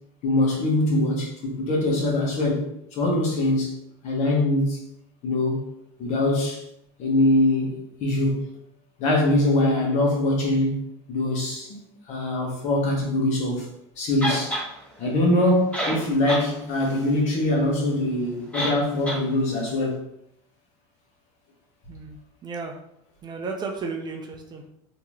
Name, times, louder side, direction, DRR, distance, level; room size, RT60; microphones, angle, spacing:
voice 1, 0.2-3.7 4.0-4.8 5.2-5.7 6.0-6.6 7.0-8.5 9.0-10.8 11.1-11.8 12.1-14.6 15.0-20.0, left 1 dB, 50° left, -1 dB, 1.4 m, -23 dB
sound 1, 14.2-14.7 15.5-15.6 15.7-16.5 16.8-16.9 18.5-18.8 19.1-19.2, equal, 10° left, 1.4 m, -27 dB
voice 2, 15.8-16.2 21.9-22.8 23.2-24.7, right 4 dB, 30° right, 3 dB, 0.5 m, -34 dB
3.5 x 2.9 x 3.1 m, 0.76 s
supercardioid pair, 115°, 15 cm